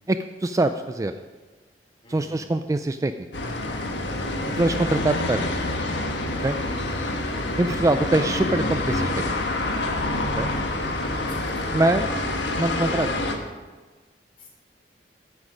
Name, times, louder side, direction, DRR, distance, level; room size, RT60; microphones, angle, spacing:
voice 1, 0.1-1.1 2.1-3.1 4.6-5.5 6.4-6.6 7.6-9.2 10.4-10.5 11.7-12.1 12.5-13.2, right 2 dB, 20° right, 9 dB, 0.3 m, -23 dB
voice 2, 2.0-2.4 6.9-7.2 11.3-11.6 14.4-14.5, equal, 30° left, -1 dB, 3.4 m, -46 dB
sound 1, 3.3-13.4, left 2 dB, 85° left, 1.4 m, -27 dB
14.0 x 8.2 x 5.1 m, 1.4 s
head